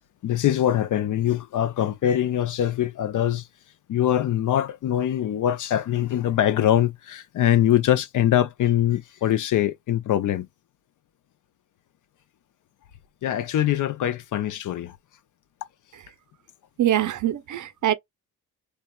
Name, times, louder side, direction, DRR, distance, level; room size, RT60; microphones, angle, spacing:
voice 1, 0.2-3.5 3.9-10.5 13.2-15.0, left 11 dB, 60° left, 0.5 m, -23 dB
voice 2, 16.8-17.9, right 12 dB, 55° right, 0.6 m, -23 dB
3.2 x 2.1 x 2.2 m
cardioid pair, 70°, 35 cm